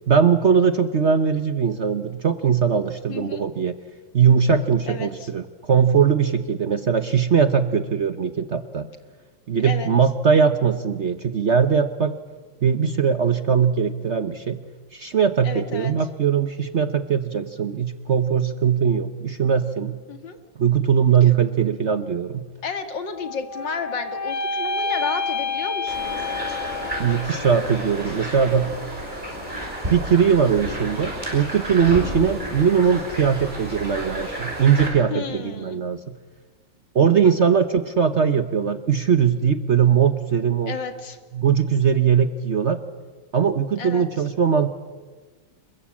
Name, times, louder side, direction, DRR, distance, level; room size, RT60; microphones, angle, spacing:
voice 1, 0.1-3.7 4.1-8.9 9.5-12.1 12.6-14.6 14.9-20.0 20.6-22.5 27.0-28.7 29.9-36.1 36.9-40.8 41.3-42.8 43.3-44.7, right 7 dB, 50° right, 11 dB, 1.0 m, -20 dB
voice 2, 3.1-3.5 4.9-5.3 9.6-9.9 15.4-15.9 20.1-20.4 22.6-26.3 32.0-32.1 35.1-35.8 37.0-37.1 40.7-41.2 43.8-44.0, left 5 dB, 70° left, 8 dB, 2.7 m, -32 dB
sound 1, 23.1-27.4, left 4 dB, 40° left, 1.7 m, -29 dB
sound 2, 25.9-34.9, right 1 dB, 25° right, 6.6 m, -31 dB
27.5 x 22.5 x 8.6 m, 1.3 s
omnidirectional pair, 2.1 m